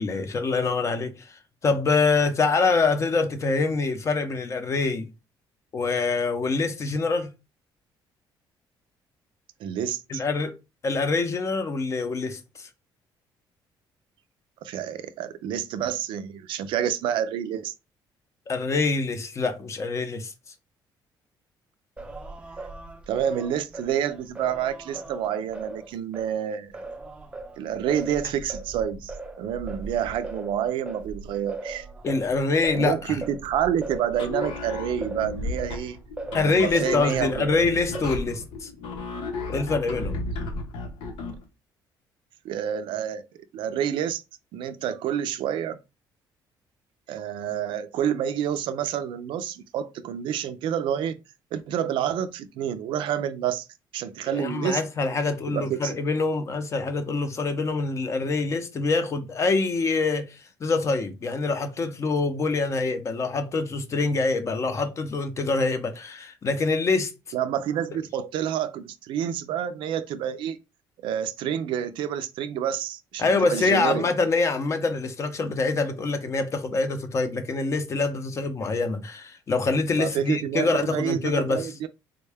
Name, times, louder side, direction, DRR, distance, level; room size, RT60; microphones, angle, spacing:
voice 1, 0.0-5.1 5.7-7.3 10.1-10.5 10.8-12.4 18.5-20.3 32.0-33.2 36.3-38.7 39.5-40.1 54.3-67.1 73.2-81.7, left 3 dB, 35° left, 0.6 m, -25 dB
voice 2, 9.6-10.2 14.6-17.7 23.1-26.7 27.6-31.9 32.7-36.0 36.4-37.6 42.4-43.3 43.5-44.2 44.5-45.8 47.1-51.2 51.5-53.7 53.9-54.8 55.5-56.0 67.3-70.6 71.0-74.1 80.0-81.9, right 9 dB, 75° right, 0.4 m, -28 dB
Singing, 22.0-26.3 26.7-37.0 37.4-38.4, right 2 dB, 10° right, 0.4 m, -38 dB
sound 1, 34.1-41.4, left 2 dB, 85° left, 0.8 m, -34 dB
3.5 x 2.2 x 3.3 m
cardioid pair, 125°, 9 cm